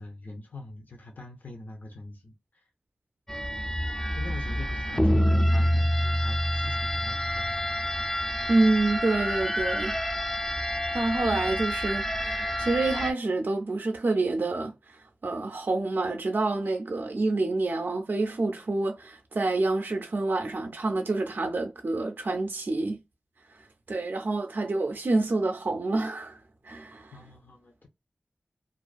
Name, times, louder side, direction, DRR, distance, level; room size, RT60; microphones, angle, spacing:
voice 1, 0.0-2.7 4.1-7.8 9.4-9.6 27.1-27.9, left 2 dB, 55° left, 0.6 m, -44 dB
sound 1, 3.3-13.1, equal, 10° left, 0.4 m, -27 dB
voice 2, 8.5-10.0 10.3-10.5 10.9-23.0 23.9-26.4 26.6-27.2, right 2 dB, 55° right, 0.4 m, -27 dB
2.4 x 2.3 x 2.4 m
wide cardioid pair, 75°, 4 cm